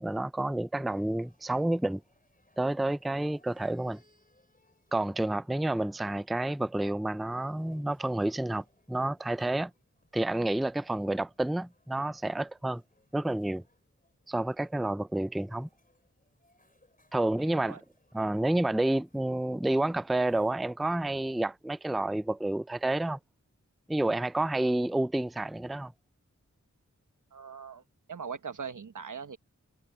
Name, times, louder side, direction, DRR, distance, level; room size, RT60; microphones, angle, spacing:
voice 1, 0.0-2.0 2.6-4.0 4.9-9.7 10.1-12.8 13.1-13.6 14.3-15.7 17.1-17.8 18.1-23.2 23.9-25.9, right 1 dB, ahead, 0.4 m, -29 dB
sound 1, 0.9-20.5, left 1 dB, 30° left, 5.8 m, -70 dB
voice 2, 17.4-17.8 27.3-27.8 28.1-29.4, right 6 dB, 85° right, 1.2 m, -41 dB
wide cardioid pair, 70°, 30 cm